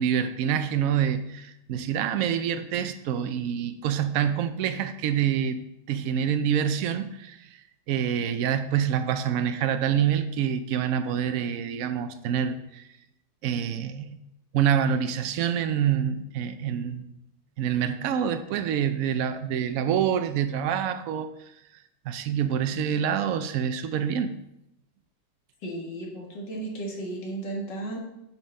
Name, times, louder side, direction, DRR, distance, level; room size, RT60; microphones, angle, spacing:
voice 1, 0.0-5.6 5.9-7.5 7.9-12.8 13.4-14.2 14.5-17.1 17.6-21.3 22.1-24.3, right 8 dB, 85° right, 9 dB, 0.7 m, -26 dB
voice 2, 25.6-28.0, right 2 dB, 65° left, -1 dB, 2.5 m, -34 dB
7.8 x 5.7 x 5.3 m, 0.84 s
omnidirectional pair, 2.1 m